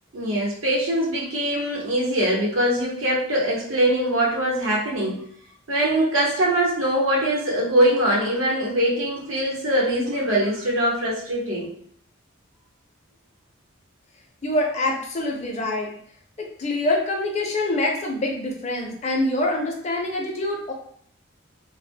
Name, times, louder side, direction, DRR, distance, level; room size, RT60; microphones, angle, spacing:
voice 1, 0.1-5.2 5.7-11.7, right 1 dB, 85° right, -4 dB, 0.8 m, -22 dB
voice 2, 14.4-15.9 16.4-20.7, left 1 dB, 35° left, 1 dB, 0.4 m, -25 dB
2.1 x 2.0 x 3.3 m, 0.63 s
head